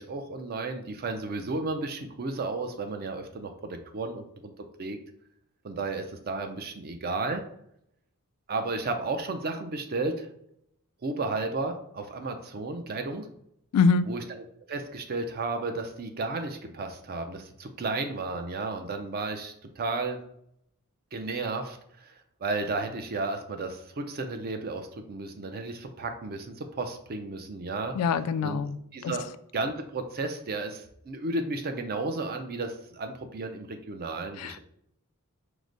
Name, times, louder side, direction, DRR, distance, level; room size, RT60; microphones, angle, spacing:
voice 1, 0.0-3.5 3.9-4.5 4.8-5.0 5.6-7.4 8.5-10.3 11.0-13.3 14.0-20.2 21.1-22.1 22.4-27.9 28.4-28.6 28.9-29.3 29.5-34.6, right 3 dB, 45° right, 6 dB, 0.5 m, -33 dB
voice 2, 13.7-14.1 27.9-28.8 29.0-29.1 34.4-34.6, left 5 dB, 80° left, 16 dB, 0.3 m, -24 dB
4.7 x 2.1 x 3.9 m, 0.74 s
head